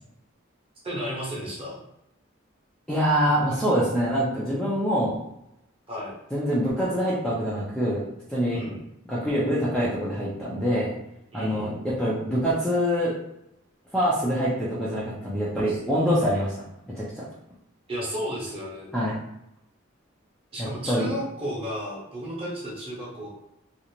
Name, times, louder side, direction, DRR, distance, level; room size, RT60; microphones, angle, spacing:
voice 1, 0.8-1.8 5.9-6.1 8.5-8.8 11.3-11.7 15.7-15.8 17.9-18.9 20.5-23.3, equal, 30° right, -5 dB, 0.8 m, -33 dB
voice 2, 2.9-5.2 6.3-8.0 8.3-8.7 9.1-10.9 11.3-13.1 13.9-16.5 16.9-17.3 18.9-19.2 20.6-21.1, equal, 5° left, -8 dB, 0.4 m, -25 dB
2.5 x 2.0 x 2.9 m, 0.82 s
head